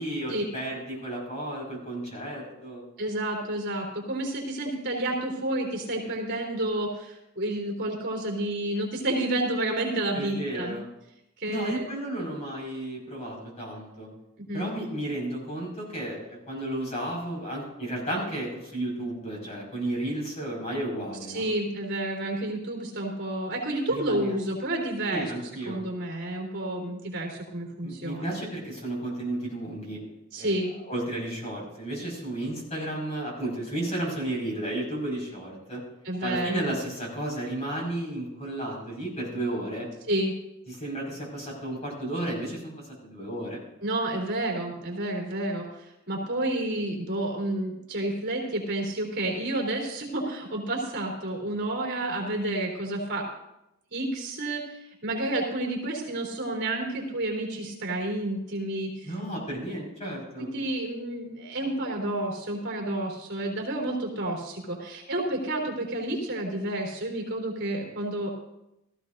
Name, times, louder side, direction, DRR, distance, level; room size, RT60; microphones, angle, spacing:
voice 1, 0.0-2.8 10.1-10.9 11.5-14.1 14.5-21.4 23.9-24.4 25.1-25.8 27.8-30.0 30.4-30.5 30.9-35.8 36.2-39.9 40.7-43.6 59.0-60.5, right 1 dB, 30° left, -2 dB, 5.3 m, -33 dB
voice 2, 3.0-10.8 11.4-11.8 14.5-14.7 21.3-25.3 25.7-28.4 30.3-30.7 36.0-36.7 40.1-40.4 43.8-53.3 53.9-54.6 55.0-59.1 60.4-68.3, right 1 dB, 50° right, 0 dB, 3.6 m, -30 dB
18.0 x 14.5 x 2.6 m, 0.87 s
head